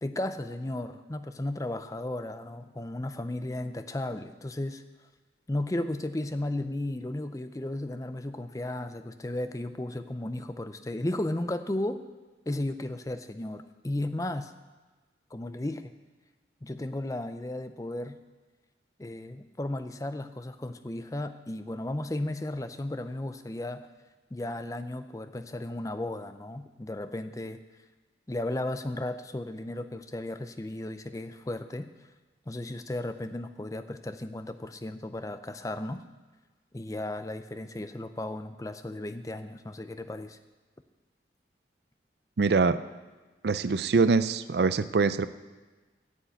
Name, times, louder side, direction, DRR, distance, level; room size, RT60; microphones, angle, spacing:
voice 1, 0.0-4.8 5.5-12.0 12.5-14.5 15.3-15.9 16.6-18.2 19.0-23.9 24.3-27.6 28.3-31.9 32.5-36.0 36.7-40.4, left 1 dB, 20° left, 10 dB, 0.5 m, -34 dB
voice 2, 42.4-42.8 43.4-45.3, right 4 dB, 70° right, 14 dB, 0.5 m, -24 dB
10.0 x 8.1 x 8.2 m, 1.3 s
head